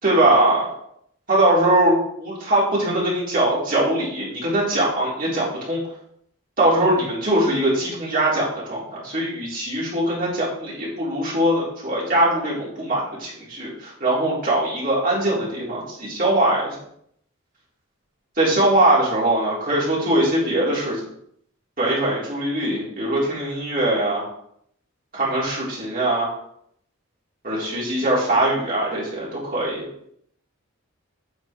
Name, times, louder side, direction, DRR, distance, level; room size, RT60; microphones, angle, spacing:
voice 1, 0.0-0.7 1.3-5.8 6.6-16.8 18.4-21.1 21.8-24.3 25.1-26.4 27.4-29.8, right 1 dB, 40° right, -7 dB, 3.9 m, -21 dB
9.0 x 5.4 x 4.5 m, 0.70 s
head